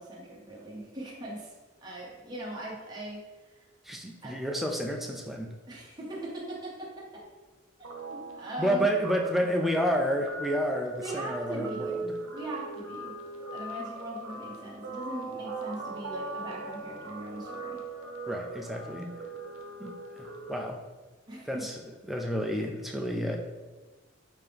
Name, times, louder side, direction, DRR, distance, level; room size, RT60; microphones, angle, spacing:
voice 1, 0.0-1.5 1.8-3.2 3.5-3.6 4.2-4.4 5.7-7.2 8.1-8.9 11.0-12.0 12.3-13.1 13.5-17.8 21.3-21.6, right 1 dB, 20° right, -5 dB, 0.9 m, -40 dB
voice 2, 3.8-5.5 8.2-8.3 8.6-12.2 18.3-19.2 19.8-20.8 21.5-21.8 22.1-23.4, equal, ahead, 2 dB, 0.4 m, -30 dB
Guitar, 7.8-20.6, right 2 dB, 90° right, 0.7 m, -40 dB
5.4 x 2.8 x 3.4 m, 1.2 s
head